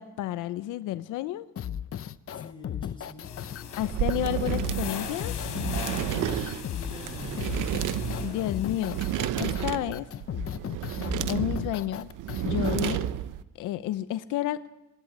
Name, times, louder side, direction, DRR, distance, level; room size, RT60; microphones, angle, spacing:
voice 1, 0.0-1.5 3.8-5.3 8.2-9.0 9.4-10.1 11.3-12.1 12.4-13.1 13.6-14.7, left 13 dB, 90° left, 14 dB, 0.7 m, -31 dB
sound 1, 1.6-13.0, left 9 dB, 50° left, 0.8 m, -36 dB
voice 2, 2.3-3.4 5.8-6.4 6.7-7.8, left 2 dB, 15° left, 6 dB, 5.8 m, -46 dB
sound 2, 3.2-9.2, left 7 dB, 75° left, 4.3 m, -39 dB
sound 3, 3.8-13.4, right 12 dB, 85° right, 0.9 m, -31 dB
24.5 x 11.5 x 9.8 m, 1.0 s
cardioid pair, 90°, 30 cm